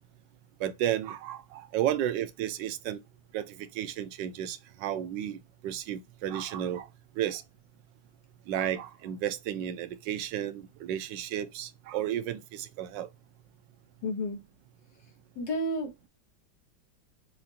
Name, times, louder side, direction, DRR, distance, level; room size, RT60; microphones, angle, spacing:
voice 1, 0.6-3.0 3.3-6.9 7.2-7.4 8.5-13.1, right 11 dB, 85° right, 1.3 m, -33 dB
voice 2, 14.0-14.4 15.4-16.1, left 1 dB, 75° left, 2.0 m, -31 dB
6.1 x 2.5 x 2.7 m
omnidirectional pair, 1.9 m